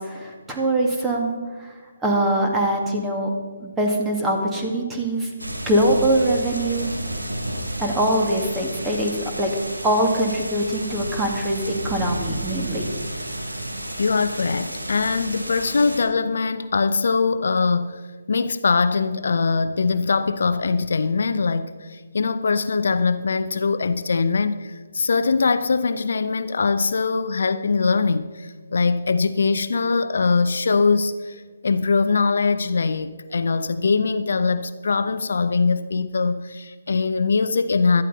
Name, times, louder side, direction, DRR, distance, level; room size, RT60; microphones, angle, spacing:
voice 1, 0.0-1.7 2.0-3.3 3.6-5.3 5.7-6.9 7.8-9.5 9.8-12.9, right 1 dB, 10° right, 2.2 m, -23 dB
sound 1, 5.4-16.0, right 1 dB, 85° right, 2.7 m, -31 dB
voice 2, 14.0-38.0, left 4 dB, 60° left, 0.7 m, -22 dB
17.0 x 12.5 x 4.1 m
figure-of-eight pair, 140°, 0 cm